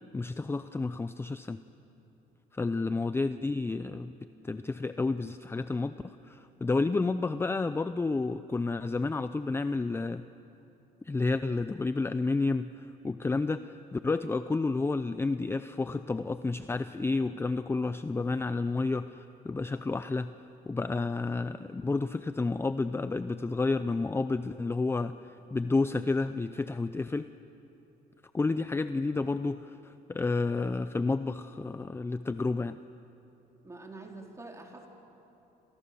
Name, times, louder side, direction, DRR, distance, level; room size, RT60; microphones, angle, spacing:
voice 1, 0.1-1.6 2.5-4.1 4.4-10.2 11.0-20.3 20.6-27.3 28.3-32.8, left 3 dB, 15° left, 12 dB, 0.6 m, -30 dB
voice 2, 33.6-34.9, right 2 dB, 15° right, 1 dB, 4.2 m, -46 dB
29.0 x 27.5 x 7.0 m, 3.0 s
cardioid pair, 110°, 17 cm